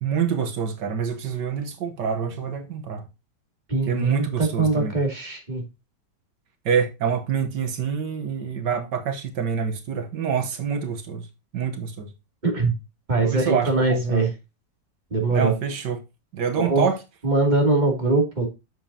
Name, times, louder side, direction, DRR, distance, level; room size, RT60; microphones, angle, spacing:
voice 1, 0.0-3.1 3.8-5.0 6.6-11.3 11.5-12.1 13.2-14.2 15.3-16.0 16.3-17.0, right 7 dB, 75° right, 1.7 m, -26 dB
voice 2, 3.7-5.6 12.4-12.7 13.1-14.3 15.1-15.5 16.6-16.9 17.2-18.5, right 3 dB, 25° right, 2.7 m, -22 dB
8.8 x 7.1 x 2.8 m
omnidirectional pair, 1.9 m